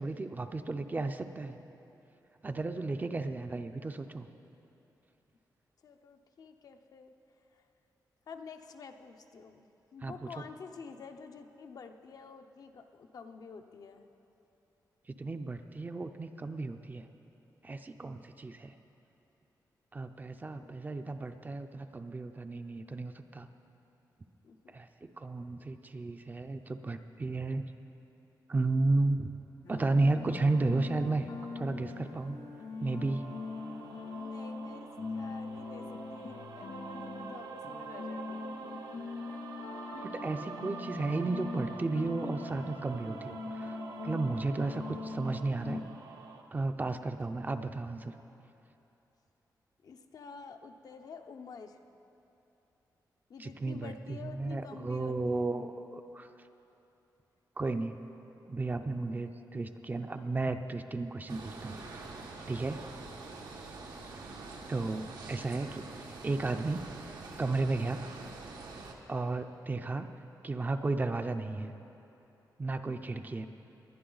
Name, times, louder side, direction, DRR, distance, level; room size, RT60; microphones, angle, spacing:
voice 1, 0.0-1.6 2.4-4.3 10.0-10.3 15.2-17.1 17.6-18.7 19.9-23.5 24.7-27.7 28.5-29.3 29.7-31.3 31.5-32.4 32.8-33.3 39.9-43.8 44.0-45.8 46.5-48.1 53.4-56.3 57.6-58.0 58.5-61.8 62.5-62.8 64.7-66.9 67.4-68.1 69.1-70.1 70.4-71.7 72.6-73.5, right 3 dB, 25° right, 8 dB, 0.5 m, -33 dB
voice 2, 5.8-7.1 8.3-14.1 20.5-20.8 24.4-24.8 34.1-38.5 49.8-51.8 53.3-55.5 63.0-63.2 68.1-68.3 73.1-73.3, left 5 dB, 60° left, 6 dB, 0.7 m, -49 dB
sound 1, 29.6-45.8, left 3 dB, 75° left, 2.2 m, -42 dB
sound 2, 32.8-46.4, right 5 dB, 65° right, 0.8 m, -47 dB
sound 3, 61.3-68.9, right 3 dB, 85° right, 1.3 m, -45 dB
20.0 x 11.0 x 4.0 m, 3.0 s
wide cardioid pair, 135°, 7 cm